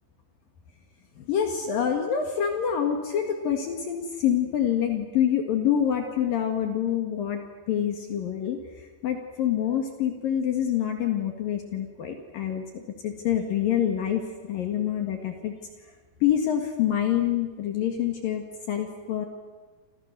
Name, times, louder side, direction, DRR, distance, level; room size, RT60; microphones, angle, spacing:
voice 1, 1.2-7.4 7.7-15.5 16.2-19.3, left 9 dB, 60° left, 4 dB, 3.4 m, -26 dB
29.0 x 27.0 x 6.8 m, 1.3 s
omnidirectional pair, 4.7 m